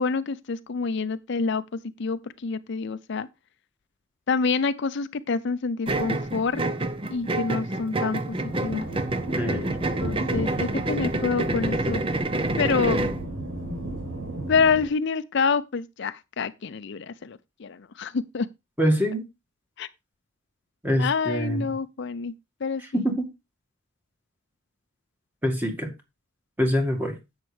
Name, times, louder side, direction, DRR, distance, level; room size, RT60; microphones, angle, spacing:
voice 1, 0.0-1.6 2.0-3.3 4.3-6.6 7.1-8.2 8.6-8.9 10.0-12.0 12.6-13.1 14.5-18.5 19.8-19.9 21.0-22.3 22.6-23.0, left 5 dB, 60° left, 0.5 m, -27 dB
sound 1, 5.9-13.2, right 2 dB, 25° right, 0.7 m, -28 dB
sound 2, 8.5-14.9, right 1 dB, 85° right, 5.2 m, -34 dB
voice 2, 9.4-9.7 18.8-19.3 20.8-21.8 22.9-23.3 25.4-25.9 26.6-27.2, equal, 10° right, 1.8 m, -25 dB
10.5 x 8.1 x 3.3 m
head